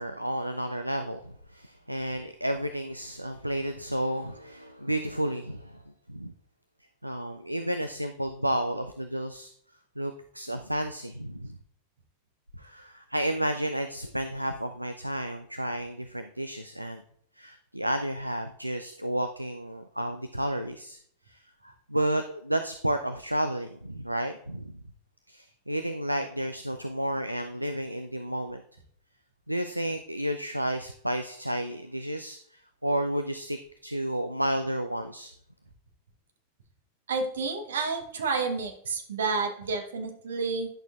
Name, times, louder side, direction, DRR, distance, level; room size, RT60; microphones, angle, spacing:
voice 1, 0.0-5.8 6.1-6.3 7.0-9.5 10.0-11.6 12.6-17.0 17.4-21.0 21.3-24.8 25.3-28.6 29.5-35.3, right 1 dB, 90° right, 8 dB, 0.3 m, -31 dB
voice 2, 37.1-40.7, right 4 dB, 65° right, 4 dB, 1.0 m, -30 dB
10.5 x 6.2 x 2.4 m, 0.63 s
figure-of-eight pair, 90°, 0 cm